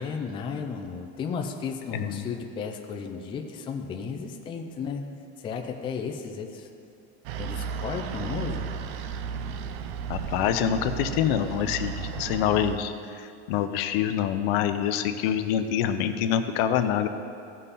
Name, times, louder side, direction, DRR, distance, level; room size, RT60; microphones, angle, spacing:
voice 1, 0.0-5.0 5.4-6.7 7.4-8.7, left 5 dB, 15° left, 3 dB, 0.4 m, -34 dB
voice 2, 1.9-2.2 10.1-17.1, left 9 dB, 70° left, 9 dB, 0.6 m, -26 dB
sound 1, 7.2-12.8, right 6 dB, 70° right, 0.7 m, -34 dB
15.0 x 5.6 x 4.1 m, 2.5 s
cardioid pair, 165°, 31 cm